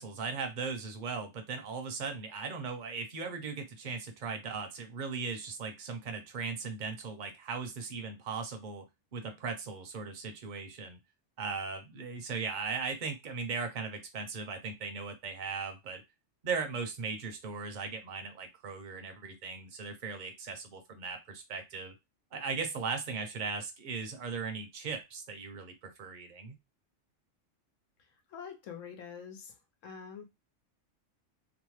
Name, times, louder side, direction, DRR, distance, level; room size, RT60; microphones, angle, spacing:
voice 1, 0.0-8.8 9.1-11.0 11.4-16.0 16.4-21.9 22.3-26.6, right 5 dB, 50° right, 0.6 m, -38 dB
voice 2, 28.3-29.6 29.8-30.2, left 7 dB, 90° left, 1.1 m, -45 dB
2.9 x 2.1 x 3.1 m
omnidirectional pair, 1.3 m